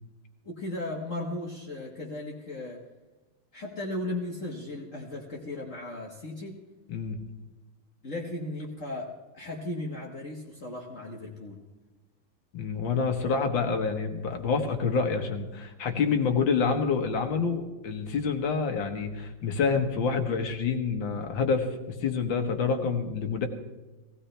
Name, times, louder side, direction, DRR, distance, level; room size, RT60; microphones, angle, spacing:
voice 1, 0.4-2.8 3.5-6.6 8.0-11.6, left 2 dB, 40° left, -2 dB, 1.7 m, -36 dB
voice 2, 12.5-21.7 22.0-23.5, left 5 dB, 65° left, 5 dB, 2.0 m, -27 dB
18.0 x 16.0 x 3.3 m, 1.2 s
omnidirectional pair, 2.3 m